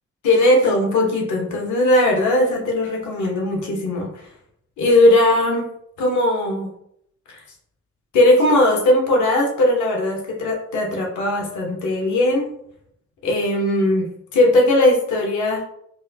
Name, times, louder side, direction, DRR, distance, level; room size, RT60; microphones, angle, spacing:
voice 1, 0.2-4.3 4.8-5.7 6.0-6.7 7.3-7.4 8.1-12.5 13.2-15.6, left 1 dB, 75° left, -1 dB, 1.1 m, -18 dB
4.6 x 2.3 x 2.8 m, 0.72 s
cardioid pair, 90°, 30 cm